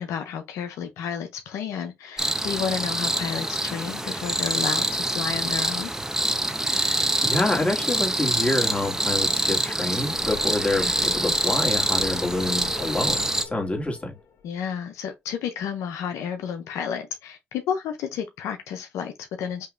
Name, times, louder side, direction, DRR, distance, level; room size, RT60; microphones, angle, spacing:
voice 1, 0.0-5.9 14.4-19.7, left 8 dB, 85° left, 0.6 m, -31 dB
sound 1, 2.2-13.5, right 1 dB, 10° right, 0.8 m, -25 dB
voice 2, 6.9-14.2, left 2 dB, 25° left, 1.9 m, -27 dB
sound 2, 10.2-14.6, left 5 dB, 65° left, 1.4 m, -41 dB
5.6 x 2.9 x 2.5 m
supercardioid pair, 55°, 5 cm